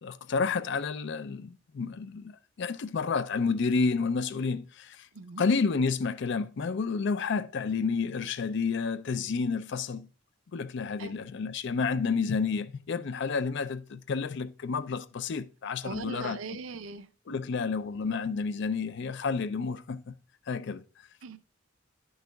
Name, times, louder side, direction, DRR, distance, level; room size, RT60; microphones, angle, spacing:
voice 1, 0.0-5.1 5.4-10.1 10.5-16.4 17.3-20.1 20.5-20.8, left 5 dB, 65° left, 0.4 m, -30 dB
voice 2, 5.1-5.5 11.0-11.1 15.8-17.1 21.2-21.4, right 4 dB, 85° right, 0.6 m, -40 dB
10.5 x 6.4 x 2.2 m
head